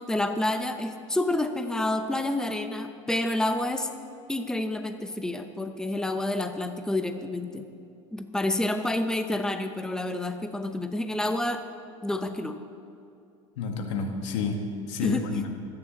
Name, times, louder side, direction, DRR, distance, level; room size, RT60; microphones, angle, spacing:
voice 1, 0.0-3.9 4.3-7.7 8.1-11.6 12.0-12.6 15.0-15.3, left 1 dB, 5° left, 7 dB, 0.9 m, -29 dB
voice 2, 13.6-15.5, left 5 dB, 75° left, 4 dB, 1.8 m, -30 dB
24.0 x 9.9 x 4.0 m, 2.7 s
hypercardioid pair, 90°, 16 cm